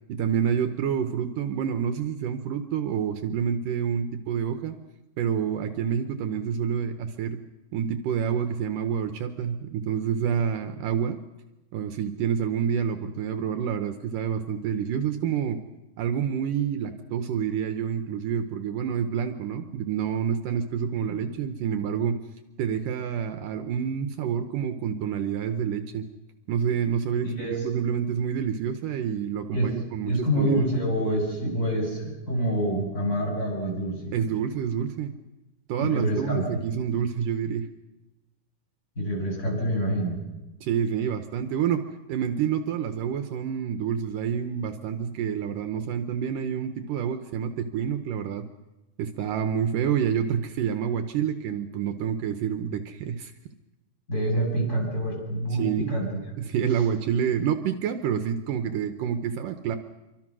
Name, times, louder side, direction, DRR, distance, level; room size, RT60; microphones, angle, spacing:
voice 1, 0.1-4.7 5.2-7.4 7.7-11.2 11.7-15.6 16.0-22.2 22.6-26.1 26.5-30.7 34.1-35.1 35.7-37.7 40.6-48.5 49.0-53.3 55.6-56.1 56.4-59.8, right 8 dB, 75° right, 8 dB, 2.5 m, -28 dB
voice 2, 27.2-27.6 29.5-29.8 30.0-34.1 35.8-36.6 39.0-40.2 54.1-56.2, right 1 dB, 20° left, -1 dB, 8.4 m, -27 dB
26.5 x 24.0 x 6.2 m, 1.0 s
omnidirectional pair, 4.1 m